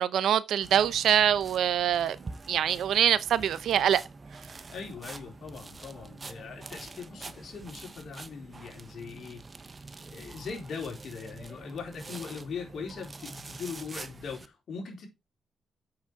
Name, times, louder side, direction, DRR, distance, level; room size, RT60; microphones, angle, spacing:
voice 1, 0.0-2.2 2.5-4.0, right 10 dB, 80° right, 0.8 m, -24 dB
sound 1, 0.6-14.5, right 3 dB, 35° right, 1.1 m, -46 dB
voice 2, 4.7-9.4 10.1-15.1, left 5 dB, 70° left, 4.1 m, -40 dB
7.9 x 6.6 x 4.8 m
cardioid pair, 65°, 0 cm